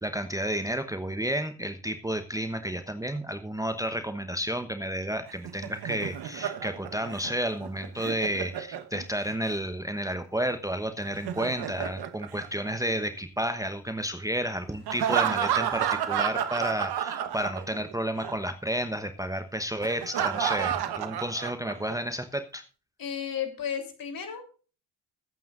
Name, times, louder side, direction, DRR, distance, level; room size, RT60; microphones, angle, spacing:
voice 1, 0.0-22.6, equal, 5° right, 8 dB, 1.1 m, -31 dB
Laughter, 5.3-9.3 11.0-13.2 14.9-17.9 18.2-18.3 19.8-21.9, right 9 dB, 50° right, 1.3 m, -31 dB
voice 2, 23.0-24.5, left 8 dB, 45° left, 5 dB, 3.5 m, -33 dB
21.0 x 9.2 x 2.6 m, 0.36 s
hypercardioid pair, 55°, 48 cm